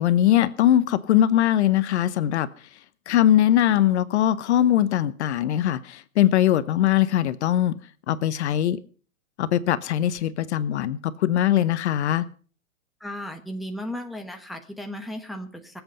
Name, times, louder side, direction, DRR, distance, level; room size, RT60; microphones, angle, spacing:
voice 1, 0.0-2.5 3.1-7.8 8.1-8.8 9.4-12.2, left 12 dB, 55° left, 0.9 m, -21 dB
voice 2, 13.0-15.8, equal, ahead, 1.2 m, -35 dB
24.0 x 8.1 x 5.5 m
hypercardioid pair, 145°, 41 cm